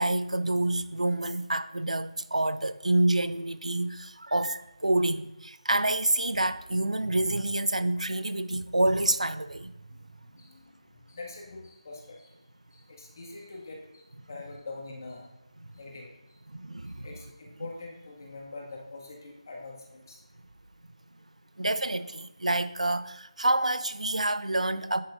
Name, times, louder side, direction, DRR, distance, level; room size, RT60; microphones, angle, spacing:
voice 1, 0.0-9.7 16.5-17.1 21.6-25.0, right 1 dB, 80° right, 0.6 m, -27 dB
voice 2, 10.3-12.4 12.7-15.3 15.7-16.1 17.0-20.2, left 3 dB, 35° left, 1.8 m, -44 dB
9.5 x 8.6 x 2.5 m
figure-of-eight pair, 165°, 4 cm